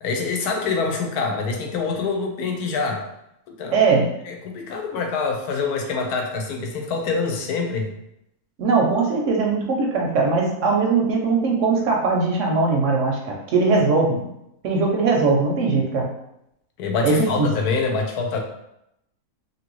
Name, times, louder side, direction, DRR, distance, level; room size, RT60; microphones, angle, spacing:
voice 1, 0.0-3.0 3.6-7.9 16.8-18.4, left 4 dB, 90° left, 2 dB, 1.1 m, -25 dB
voice 2, 3.7-4.1 8.6-14.2 14.6-16.1 17.0-17.5, right 4 dB, 70° right, 0 dB, 0.8 m, -20 dB
2.7 x 2.6 x 3.0 m, 0.82 s
omnidirectional pair, 1.6 m